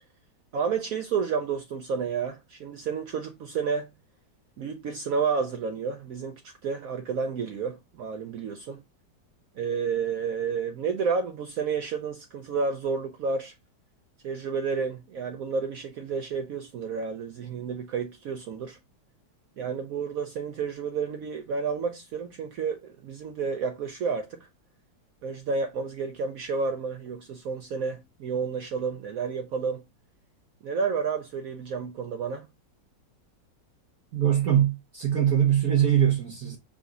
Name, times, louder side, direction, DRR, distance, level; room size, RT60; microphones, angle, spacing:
voice 1, 0.5-3.9 4.6-8.8 9.6-13.5 14.2-18.8 19.6-24.5 25.2-29.8 30.6-32.5, right 5 dB, 75° right, 0.8 m, -30 dB
voice 2, 34.1-36.6, right 10 dB, 60° right, 1.2 m, -22 dB
5.0 x 2.3 x 3.8 m
omnidirectional pair, 2.0 m